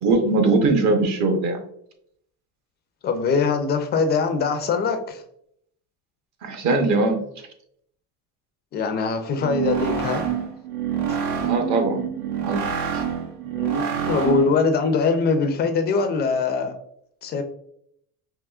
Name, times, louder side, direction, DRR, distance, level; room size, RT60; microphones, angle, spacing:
voice 1, 0.0-1.6 6.4-7.2 11.4-12.0 12.4-12.6 12.9-13.0, right 3 dB, 45° right, 5 dB, 0.8 m, -21 dB
voice 2, 3.0-5.2 8.7-10.2 13.5-16.7 17.2-17.4, left 4 dB, 25° left, 7 dB, 0.3 m, -22 dB
sound 1, 9.4-14.6, right 8 dB, 80° right, 0.9 m, -26 dB
4.8 x 3.0 x 2.3 m, 0.70 s
cardioid pair, 155°, 39 cm